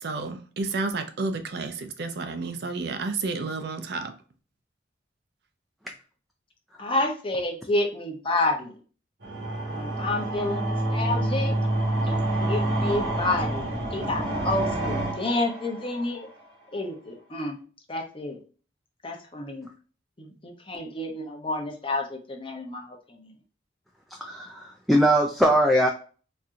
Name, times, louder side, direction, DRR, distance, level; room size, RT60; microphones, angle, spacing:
voice 1, 0.0-4.1, right 3 dB, 60° right, 0.5 m, -31 dB
voice 2, 6.8-8.8 9.7-11.5 12.0-16.3 16.7-17.6 17.9-18.4 19.0-19.7 20.2-23.3, left 2 dB, 30° left, 0.7 m, -29 dB
sound 1, 9.2-16.2, right 1 dB, 80° right, 1.3 m, -28 dB
voice 3, 24.2-25.9, equal, ahead, 0.3 m, -21 dB
4.2 x 2.6 x 2.4 m
head